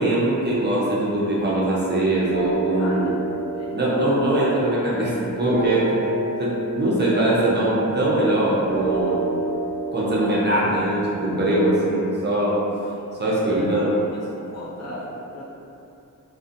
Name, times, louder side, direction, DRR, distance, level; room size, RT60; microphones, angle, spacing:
voice 1, 0.0-3.1 3.7-5.9 6.4-9.3 9.9-12.6 13.2-14.0 14.8-14.9, right 1 dB, 35° right, -7 dB, 0.4 m, -22 dB
sound 1, 2.3-11.5, right 2 dB, 10° right, 0.8 m, -30 dB
voice 2, 2.8-3.2 3.6-3.9 5.5-5.8 12.9-14.0 14.4-15.4, left 1 dB, 50° left, -7 dB, 0.5 m, -38 dB
2.5 x 2.0 x 2.4 m, 2.7 s
wide cardioid pair, 175°, 33 cm